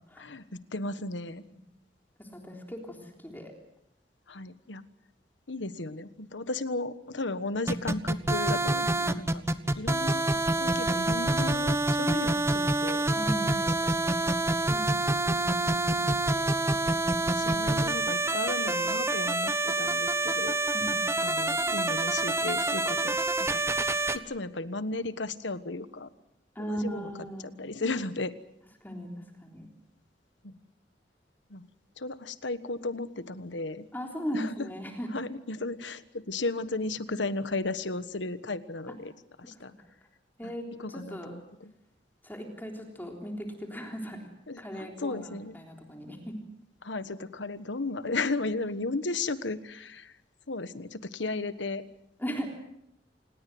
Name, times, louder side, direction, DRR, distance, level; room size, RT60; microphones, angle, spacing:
voice 1, 0.7-1.4 4.3-4.8 5.5-9.4 9.7-13.0 13.4-14.4 16.0-16.2 16.7-16.9 17.3-20.6 21.2-26.1 26.6-27.1 27.4-28.3 30.4-30.6 31.5-31.7 32.0-33.8 34.3-34.7 35.1-39.1 39.4-39.7 40.4-40.5 40.8-41.7 44.5-45.5 46.8-50.2 50.5-51.8, left 3 dB, 90° left, 13 dB, 1.4 m, -35 dB
voice 2, 2.2-3.5 13.2-13.6 14.7-15.3 20.7-21.1 26.6-27.5 28.8-29.7 33.9-35.1 40.4-41.3 42.2-44.3 44.6-46.4 52.2-52.6, equal, 10° left, 2 dB, 3.6 m, -37 dB
sound 1, 7.7-24.2, right 2 dB, 15° right, 1.2 m, -27 dB
27.5 x 19.5 x 7.8 m, 0.79 s
head